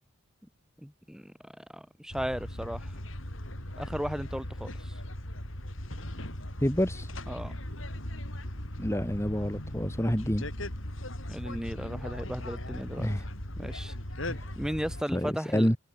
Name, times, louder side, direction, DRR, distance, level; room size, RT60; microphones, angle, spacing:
voice 1, 0.8-2.9 3.8-4.9 7.3-7.5 11.3-13.1 13.6-13.9 14.6-15.7, equal, 5° right, 5.8 m, -36 dB
sound 1, 2.1-15.0, left 1 dB, 75° left, 6.9 m, -38 dB
voice 2, 6.6-7.1 8.8-10.4 13.0-13.3 14.3-14.5 15.1-15.8, equal, 15° left, 4.0 m, -28 dB
head